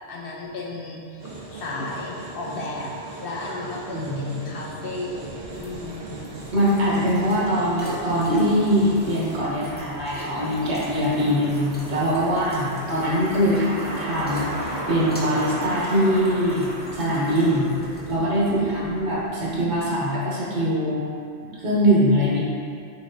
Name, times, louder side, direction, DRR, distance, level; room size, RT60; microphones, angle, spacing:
voice 1, 0.1-2.9 3.2-5.3 5.5-6.3 18.6-18.8 19.1-19.2, left 2 dB, 65° left, -3 dB, 0.8 m, -34 dB
sound 1, 1.2-9.4, right 2 dB, 65° right, 0.9 m, -38 dB
voice 2, 3.9-4.3 6.5-17.7 18.1-21.1 21.6-22.4, equal, 85° right, -7 dB, 1.4 m, -22 dB
sound 2, 5.0-19.9, equal, 10° left, 0.6 m, -37 dB
sound 3, 8.4-18.6, equal, 30° right, 1.1 m, -35 dB
6.2 x 3.3 x 2.6 m, 2.4 s
omnidirectional pair, 1.1 m